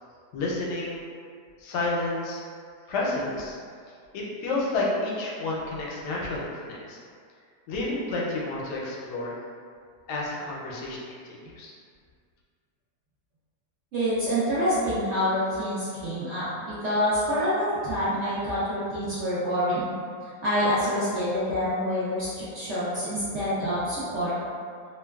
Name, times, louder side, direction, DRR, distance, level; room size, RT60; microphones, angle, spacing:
voice 1, 0.3-1.1 1.6-2.4 2.9-3.5 4.1-7.0 7.7-9.3 10.1-11.7, left 2 dB, 80° left, -4 dB, 1.1 m, -30 dB
voice 2, 13.9-19.9 20.4-24.4, equal, 65° right, -11 dB, 0.7 m, -27 dB
2.9 x 2.2 x 2.2 m, 2.1 s
omnidirectional pair, 1.8 m